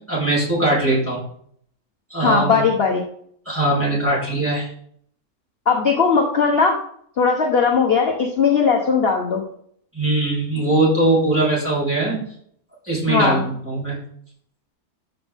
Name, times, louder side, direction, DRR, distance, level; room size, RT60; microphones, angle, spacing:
voice 1, 0.1-1.2 2.1-2.6 3.5-4.7 9.9-12.2 12.8-14.0, right 2 dB, 10° right, -7 dB, 4.2 m, -20 dB
voice 2, 2.2-3.0 5.7-6.8 7.2-9.4 13.1-13.4, left 5 dB, 40° left, 0 dB, 1.2 m, -18 dB
13.5 x 5.3 x 3.6 m, 0.65 s
omnidirectional pair, 1.7 m